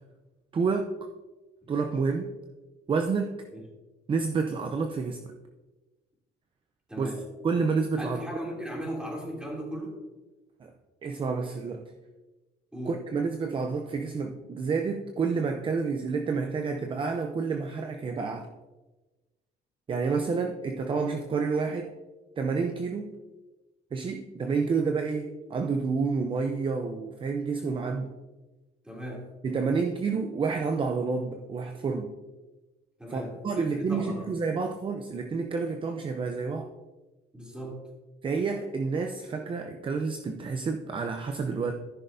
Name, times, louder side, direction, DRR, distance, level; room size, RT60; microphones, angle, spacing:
voice 1, 0.5-0.9 1.7-2.3 2.9-3.4 4.1-5.3 7.0-7.1 7.4-8.2 10.6-10.7 11.0-11.9 12.8-18.5 19.9-21.9 22.4-23.1 23.9-28.1 29.4-32.1 33.1-36.7 38.2-41.7, right 4 dB, 30° right, 5 dB, 0.7 m, -29 dB
voice 2, 6.9-7.2 8.0-10.0 12.7-13.0 28.8-29.3 33.0-34.3 37.3-37.8, equal, 5° right, -3 dB, 2.8 m, -37 dB
13.5 x 6.3 x 2.7 m, 1.1 s
cardioid pair, 110°, 17 cm